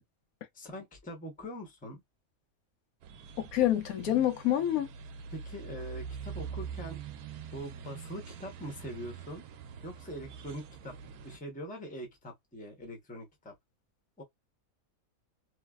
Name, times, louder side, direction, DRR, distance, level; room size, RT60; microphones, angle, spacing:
voice 1, 0.5-2.0 5.3-7.0 7.5-9.4 9.8-13.5 14.2-14.3, equal, 10° left, 0.6 m, -43 dB
sound 1, 3.0-11.4, right 7 dB, 85° right, 1.1 m, -44 dB
voice 2, 3.5-4.9, left 12 dB, 85° left, 1.1 m, -27 dB
3.1 x 2.0 x 2.3 m
omnidirectional pair, 1.5 m